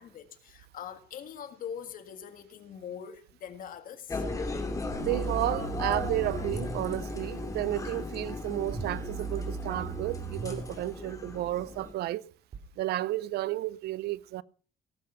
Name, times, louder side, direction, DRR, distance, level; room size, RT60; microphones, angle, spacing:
voice 1, 0.0-4.2, left 8 dB, 60° left, 1.8 m, -43 dB
sound 1, 4.1-11.9, left 2 dB, 20° left, 2.5 m, -36 dB
sound 2, 4.9-6.8 8.7-10.7 12.5-12.6, right 6 dB, 45° right, 2.8 m, -38 dB
voice 2, 5.0-12.2 12.8-14.4, right 15 dB, 80° right, 0.6 m, -32 dB
17.5 x 7.6 x 5.6 m
cardioid pair, 135°, 16 cm